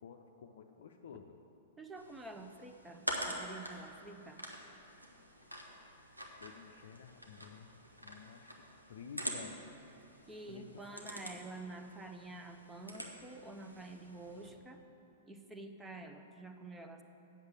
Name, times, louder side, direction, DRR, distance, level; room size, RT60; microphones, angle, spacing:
voice 1, 0.0-1.4 6.4-9.6 10.5-11.1, left 7 dB, 60° left, 3 dB, 0.5 m, -53 dB
voice 2, 1.8-4.4 10.3-14.8 15.3-17.0, right 2 dB, 10° right, 5 dB, 0.7 m, -48 dB
sound 1, 2.0-14.5, right 1 dB, 90° right, 1.2 m, -46 dB
8.1 x 6.7 x 7.8 m, 2.9 s
figure-of-eight pair, 105°, 0 cm